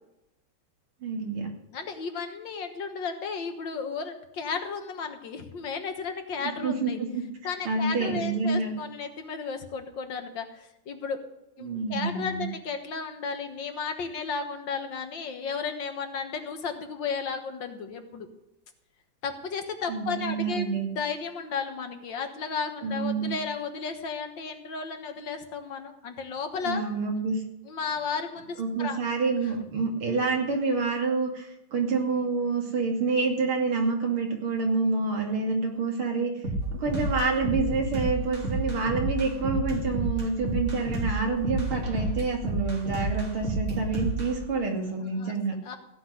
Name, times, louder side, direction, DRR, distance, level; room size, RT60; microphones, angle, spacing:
voice 1, 1.0-1.5 6.6-7.2 7.7-8.7 11.6-12.5 19.9-20.9 22.8-23.3 26.6-27.4 28.6-36.3 36.7-45.6, right 4 dB, 85° right, 2 dB, 3.3 m, -27 dB
voice 2, 1.7-7.0 7.4-11.2 11.6-18.3 19.2-26.8 27.7-29.0 45.0-45.3 45.7-45.8, left 5 dB, 65° left, 6 dB, 2.0 m, -34 dB
sound 1, 36.4-44.3, right 2 dB, 35° right, 3.1 m, -30 dB
16.0 x 5.8 x 9.5 m, 0.88 s
omnidirectional pair, 2.3 m